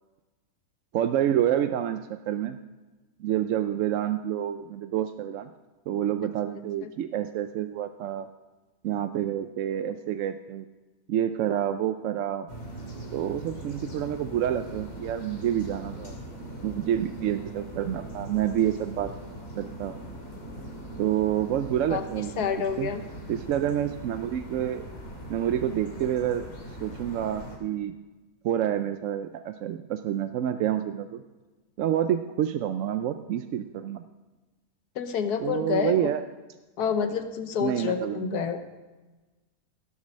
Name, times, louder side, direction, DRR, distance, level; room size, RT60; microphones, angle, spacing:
voice 1, 0.9-2.6 3.2-5.5 5.9-8.3 8.8-10.7 11.1-12.5 13.1-16.2 16.6-19.1 19.6-20.0 21.0-22.3 22.8-22.9 23.3-24.9 25.3-26.5 26.8-27.9 28.4-31.2 31.8-34.0 35.4-36.2 37.6-38.5, right 10 dB, 65° right, 9 dB, 0.8 m, -28 dB
sound 1, 12.5-27.6, right 1 dB, 60° left, 3.2 m, -41 dB
voice 2, 22.4-23.0 35.0-36.1 36.8-38.6, left 7 dB, 80° left, 8 dB, 1.5 m, -28 dB
17.0 x 7.3 x 6.4 m, 1.2 s
omnidirectional pair, 1.6 m